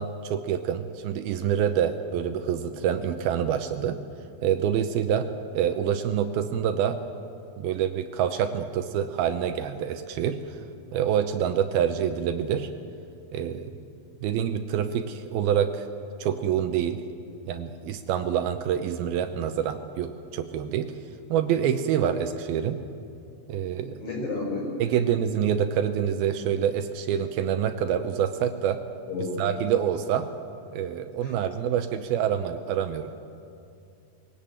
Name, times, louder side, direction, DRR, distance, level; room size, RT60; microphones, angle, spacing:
voice 1, 0.0-4.0 4.4-5.3 5.5-7.0 7.6-10.4 10.9-12.7 13.3-13.7 14.2-15.9 16.2-17.0 17.5-20.9 21.3-22.8 23.5-24.0 24.8-28.8 29.4-30.3 30.7-33.1, right 9 dB, 80° right, 8 dB, 2.6 m, -26 dB
voice 2, 23.8-24.7 29.1-29.4 31.2-31.3, left 3 dB, 45° left, -1 dB, 6.0 m, -32 dB
22.0 x 17.0 x 8.8 m, 2.6 s
omnidirectional pair, 4.6 m